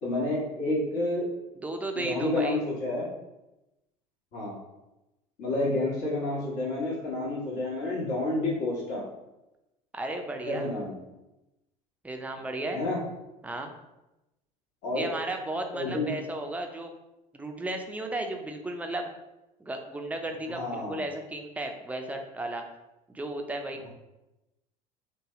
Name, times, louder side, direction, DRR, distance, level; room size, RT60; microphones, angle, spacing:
voice 1, 0.0-1.3 1.9-3.1 4.3-4.6 5.4-9.0 10.4-10.9 12.7-13.0 14.8-15.1 15.7-16.1 20.5-21.0, left 2 dB, 60° left, -5 dB, 1.3 m, -29 dB
voice 2, 1.6-2.6 9.9-10.7 12.0-12.8 13.4-13.7 14.9-16.9 17.3-19.1 19.6-22.6 23.1-23.9, right 2 dB, 5° right, 3 dB, 0.5 m, -34 dB
3.3 x 2.2 x 3.6 m, 0.96 s
hypercardioid pair, 70°, 21 cm